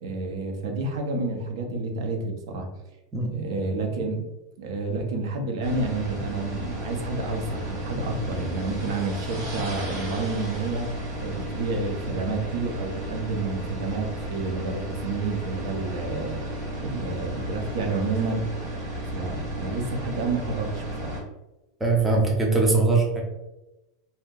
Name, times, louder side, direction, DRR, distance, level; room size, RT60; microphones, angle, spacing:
voice 1, 0.0-2.7 3.2-4.3 4.6-10.9 11.2-16.4 16.8-18.5 19.1-21.2, right 3 dB, 75° right, 3 dB, 0.6 m, -29 dB
sound 1, 5.6-21.2, right 1 dB, 40° right, 1.1 m, -33 dB
voice 2, 21.8-23.2, right 3 dB, 5° right, -1 dB, 0.4 m, -21 dB
2.7 x 2.1 x 3.7 m, 0.99 s
supercardioid pair, 175°, 2 cm